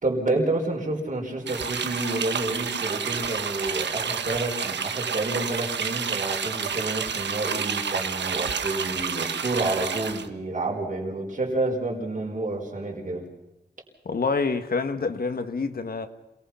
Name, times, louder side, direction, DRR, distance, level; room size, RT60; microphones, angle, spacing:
voice 1, 0.0-13.3, right 2 dB, 45° right, 4.8 m, -29 dB
sound 1, 1.5-10.3, right 6 dB, 90° right, 1.2 m, -29 dB
voice 2, 14.0-16.1, left 4 dB, 55° left, 1.6 m, -27 dB
27.5 x 19.0 x 5.8 m
wide cardioid pair, 100°, 18 cm